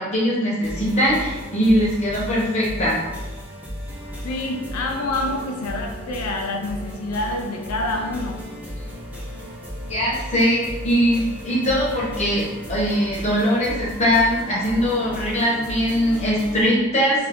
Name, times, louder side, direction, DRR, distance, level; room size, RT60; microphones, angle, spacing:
voice 1, 0.0-3.0 9.9-17.3, equal, 30° left, -6 dB, 0.8 m, -21 dB
sound 1, 0.6-16.6, equal, 5° right, 0.7 m, -35 dB
voice 2, 4.2-8.4, left 2 dB, 90° left, 2 dB, 0.4 m, -27 dB
2.6 x 2.5 x 3.4 m, 1.2 s
head